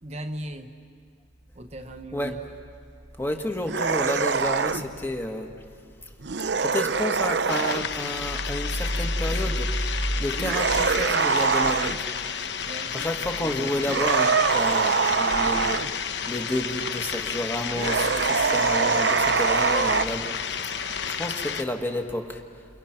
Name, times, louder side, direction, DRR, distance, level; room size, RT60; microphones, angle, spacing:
voice 1, 0.0-0.7 1.5-2.4 12.6-13.0 13.4-14.0, right 1 dB, 35° right, 6 dB, 0.9 m, -38 dB
voice 2, 3.2-5.5 6.6-12.1 12.9-20.3 21.1-22.4, left 1 dB, 10° left, 3 dB, 1.7 m, -30 dB
sound 1, 3.6-4.9 6.2-7.9 10.4-12.0 13.8-15.9 17.8-20.0, right 5 dB, 60° right, 0.7 m, -23 dB
sound 2, 7.5-21.6, left 7 dB, 60° left, 1.0 m, -32 dB
sound 3, 10.1-16.6, equal, 80° left, 2.9 m, -46 dB
29.5 x 29.5 x 6.0 m, 2.1 s
head